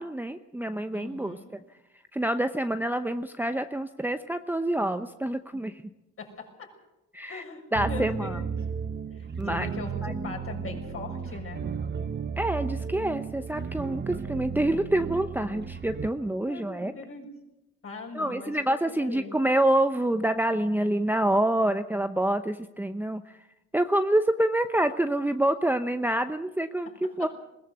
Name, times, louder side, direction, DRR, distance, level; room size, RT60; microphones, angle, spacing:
voice 1, 0.0-1.4 2.1-5.8 7.1-7.4 7.7-8.4 9.4-9.7 10.0-10.1 12.4-16.9 18.1-23.2 23.7-27.3, right 1 dB, 5° right, 8 dB, 0.8 m, -27 dB
voice 2, 0.9-1.5 5.5-5.6 6.2-6.7 7.2-8.5 9.1-11.6 16.4-17.3 17.8-19.3 26.8-27.3, left 3 dB, 45° left, 1 dB, 6.6 m, -41 dB
sound 1, 7.7-16.1, right 6 dB, 35° right, 1.2 m, -34 dB
21.0 x 17.0 x 8.0 m, 0.94 s
cardioid pair, 90°, 30 cm